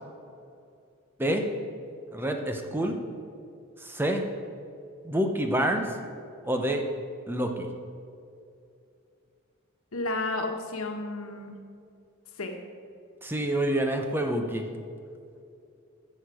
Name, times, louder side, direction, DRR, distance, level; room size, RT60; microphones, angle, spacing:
voice 1, 2.1-3.0 3.8-4.3 5.0-6.0 6.4-6.8 7.3-7.7 13.2-14.7, right 1 dB, 10° right, 4 dB, 0.7 m, -27 dB
voice 2, 9.9-11.5 12.4-12.6, left 2 dB, 85° left, 4 dB, 1.3 m, -32 dB
14.5 x 6.5 x 4.9 m, 2.5 s
head